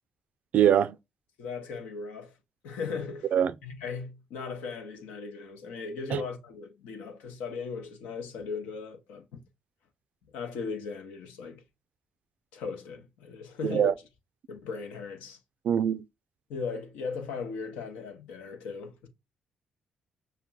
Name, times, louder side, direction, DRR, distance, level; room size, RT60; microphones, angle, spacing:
voice 1, 0.5-1.0 3.3-3.5 6.1-6.2 13.6-13.9 15.6-16.0, right 9 dB, 65° right, 0.3 m, -23 dB
voice 2, 1.4-2.3 2.6-3.3 3.6-9.4 10.3-11.6 12.5-13.9 14.5-15.4 16.5-19.1, left 5 dB, 85° left, 0.8 m, -37 dB
5.7 x 2.2 x 2.2 m
supercardioid pair, 60°, 3 cm